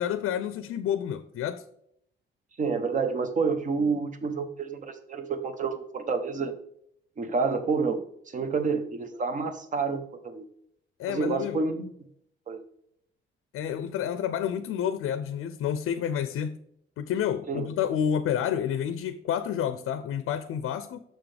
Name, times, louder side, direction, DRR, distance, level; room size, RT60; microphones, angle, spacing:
voice 1, 0.0-1.6 11.0-11.6 13.5-16.6 17.0-21.0, left 9 dB, 90° left, 12 dB, 0.5 m, -29 dB
voice 2, 2.6-6.5 7.2-10.4 11.1-11.9 12.5-12.6 17.5-17.7, right 4 dB, 35° right, 9 dB, 0.8 m, -29 dB
6.4 x 6.0 x 3.3 m, 0.72 s
cardioid pair, 170°, 21 cm